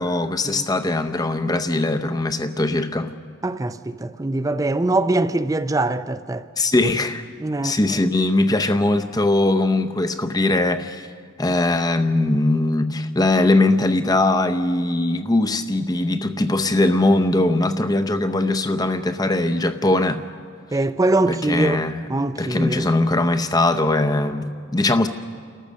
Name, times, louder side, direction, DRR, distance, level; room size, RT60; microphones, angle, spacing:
voice 1, 0.0-3.1 6.6-7.2 7.6-11.1 11.4-20.2 21.3-22.0 22.4-25.1, left 2 dB, 20° left, 0.7 m, -20 dB
voice 2, 3.4-6.4 7.4-7.8 20.7-22.9, right 2 dB, 15° right, 0.4 m, -23 dB
30.0 x 14.0 x 6.4 m
head